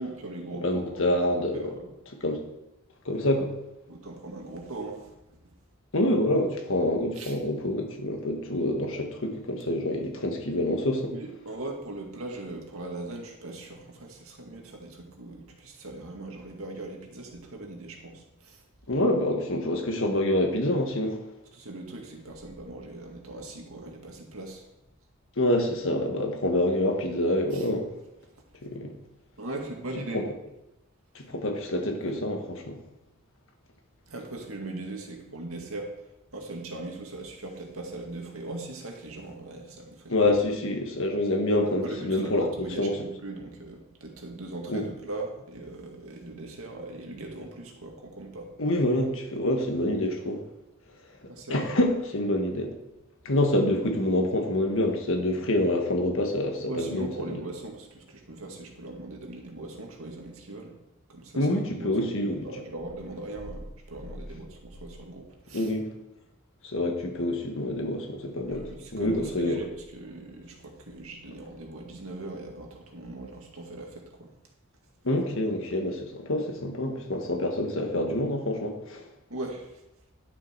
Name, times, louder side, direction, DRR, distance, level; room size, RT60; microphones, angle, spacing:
voice 1, 0.0-1.1 1.5-1.9 3.9-5.0 7.2-7.3 11.1-18.1 18.5-18.6 21.5-24.6 27.5-27.6 29.4-30.3 34.1-35.9 36.3-40.3 41.8-48.5 51.3-51.7 53.4-53.5 56.7-60.7 61.1-61.4 61.8-61.9 62.2-65.7 68.5-74.0 79.3-79.7, right 2 dB, 75° right, 1 dB, 2.0 m, -39 dB
voice 2, 0.5-1.8 2.1-2.4 3.0-3.5 5.9-11.1 18.9-21.2 25.4-27.9 28.6-28.9 29.9-30.2 31.1-32.8 40.1-43.0 44.7-44.8 48.6-50.4 51.5-52.7 53.2-57.4 61.3-62.5 65.5-65.9 66.7-69.6 75.0-79.0, left 1 dB, 65° left, 3 dB, 1.6 m, -27 dB
11.0 x 6.7 x 4.6 m, 0.91 s
head